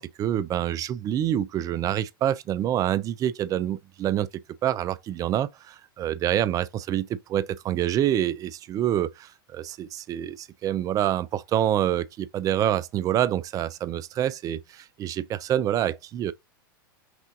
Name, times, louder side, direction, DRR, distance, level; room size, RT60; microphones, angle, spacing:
voice 1, 0.0-4.3 4.6-16.3, right 11 dB, 30° right, 0.4 m, -27 dB
6.0 x 2.5 x 2.5 m
hypercardioid pair, 105°, 12 cm